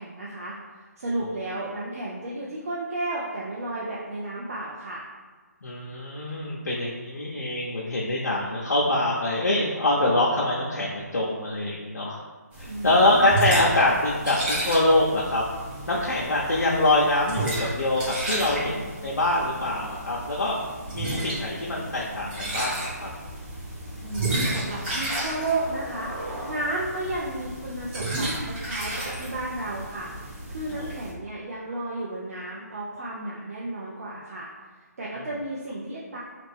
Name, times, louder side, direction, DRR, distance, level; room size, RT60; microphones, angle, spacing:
voice 1, 0.0-5.0 12.7-14.0 24.0-30.1 30.5-34.5 35.0-36.2, right 2 dB, 55° right, -6 dB, 0.6 m, -33 dB
voice 2, 5.6-12.2 12.6-15.4 15.9-20.6 20.9-23.1 30.7-30.9, left 2 dB, 75° left, -4 dB, 0.6 m, -24 dB
sound 1, 12.5-31.1, right 2 dB, 40° right, 1.3 m, -33 dB
Skateboard, 23.7-28.3, right 1 dB, 5° right, 0.4 m, -43 dB
3.1 x 2.5 x 3.3 m, 1.4 s
figure-of-eight pair, 155°, 9 cm